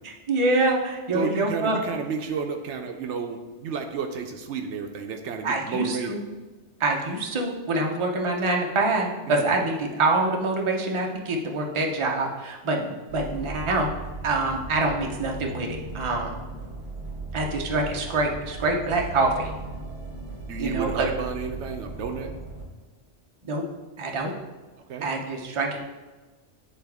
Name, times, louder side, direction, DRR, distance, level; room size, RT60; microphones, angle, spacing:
voice 1, 0.0-1.8 5.4-6.2 6.8-13.9 14.2-16.4 17.3-19.5 20.6-21.1 23.4-23.6 24.0-24.3 25.0-25.8, right 2 dB, 30° right, 1 dB, 0.7 m, -25 dB
voice 2, 1.1-6.2 9.3-9.5 20.5-22.3 24.9-25.1, right 5 dB, 75° right, 5 dB, 0.9 m, -32 dB
sound 1, 13.1-22.6, right 2 dB, 55° right, 1.5 m, -37 dB
9.7 x 3.5 x 3.5 m, 1.2 s
omnidirectional pair, 1.3 m